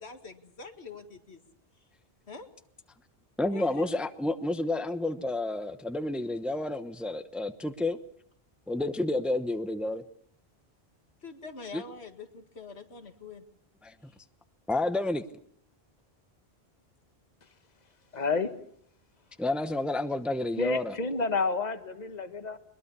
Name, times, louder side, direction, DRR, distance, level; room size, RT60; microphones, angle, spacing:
voice 1, 0.0-1.4 1.8-1.9 2.3-2.5 3.5-3.9 11.2-13.4 14.0-14.2 19.2-19.4, left 4 dB, 80° left, 7 dB, 2.2 m, -45 dB
voice 2, 3.4-8.0 8.7-10.0 11.7-11.8 13.8-13.9 14.7-15.2 19.4-21.0, left 2 dB, ahead, 10 dB, 0.9 m, -30 dB
voice 3, 18.1-18.5 20.6-22.6, left 4 dB, 40° left, 10 dB, 1.5 m, -30 dB
22.5 x 22.0 x 6.9 m, 0.65 s
omnidirectional pair, 1.1 m